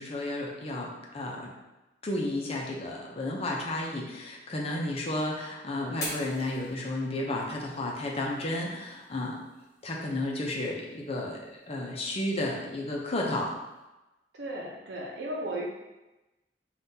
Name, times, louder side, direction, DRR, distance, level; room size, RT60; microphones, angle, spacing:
voice 1, 0.0-1.5 2.0-9.4 9.8-13.5, left 1 dB, 35° left, -2 dB, 0.7 m, -32 dB
Fire, 5.9-13.8, left 1 dB, 20° left, 1.0 m, -47 dB
voice 2, 14.3-15.6, right 1 dB, 85° right, -1 dB, 0.7 m, -35 dB
5.3 x 2.5 x 2.8 m, 1.0 s
head